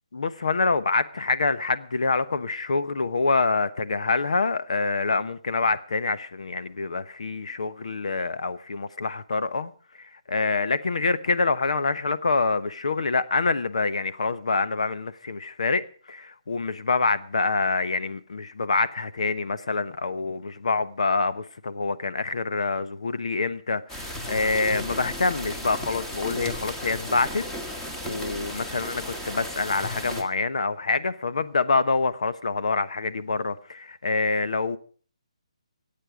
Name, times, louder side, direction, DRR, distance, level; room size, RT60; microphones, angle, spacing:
voice 1, 0.1-9.7 10.0-27.5 28.0-34.8, left 4 dB, 70° left, 1.0 m, -26 dB
sound 1, 23.9-30.2, equal, 10° left, 1.3 m, -35 dB
23.5 x 8.7 x 4.9 m
hypercardioid pair, 165°, 4 cm